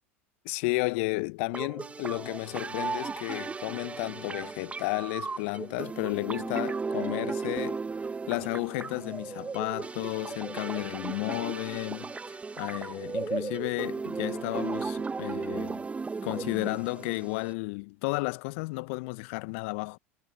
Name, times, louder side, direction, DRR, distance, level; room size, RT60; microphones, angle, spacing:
voice 1, 0.4-7.8 8.3-15.9 16.2-20.0, left 29 dB, 60° left, 0.9 m, -33 dB
sound 1, 1.5-17.5, right 4 dB, 15° right, 1.2 m, -35 dB
figure-of-eight pair, 80°, 8 cm